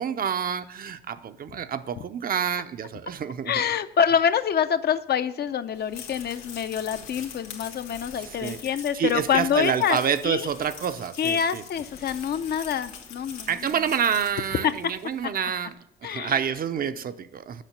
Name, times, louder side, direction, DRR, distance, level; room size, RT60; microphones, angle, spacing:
voice 1, 0.0-3.7 8.2-11.6 13.5-15.8 16.0-17.6, right 8 dB, 45° right, 0.6 m, -28 dB
voice 2, 3.5-10.0 10.2-10.5 11.2-13.5 14.6-14.7 16.0-16.4, left 8 dB, 55° left, 0.6 m, -26 dB
sound 1, 5.7-15.3, left 6 dB, 80° left, 1.6 m, -44 dB
7.4 x 5.6 x 6.7 m
cardioid pair, 90°, 20 cm